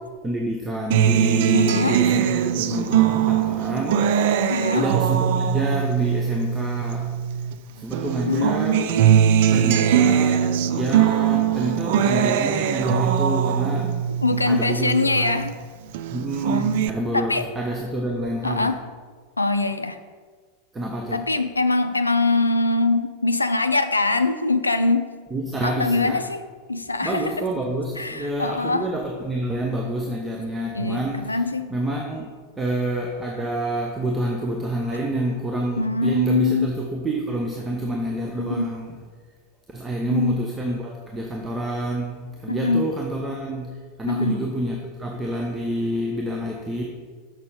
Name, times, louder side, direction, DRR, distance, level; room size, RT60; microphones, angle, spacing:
voice 1, 0.2-7.1 7.7-8.9 9.5-10.5 10.7-13.9 14.3-15.4 16.1-18.8 20.7-21.2 25.3-26.2 27.0-31.4 31.7-32.3 32.6-39.0 39.7-43.7 44.0-46.8, right 1 dB, 15° right, 0 dB, 0.9 m, -28 dB
Acoustic guitar, 0.9-7.6 7.9-15.5 15.9-16.9, right 9 dB, 50° right, 0.4 m, -21 dB
voice 2, 1.5-2.0 4.5-4.9 8.3-9.1 14.2-15.6 17.1-17.4 18.4-18.8 19.4-20.0 21.1-25.1 25.6-27.3 28.0-28.9 30.7-31.7 35.8-36.7 38.4-38.7 40.1-40.4 42.5-42.9 44.1-44.4, left 3 dB, 80° left, 10 dB, 0.5 m, -23 dB
6.7 x 6.3 x 5.3 m, 1.5 s
figure-of-eight pair, 85°, 0 cm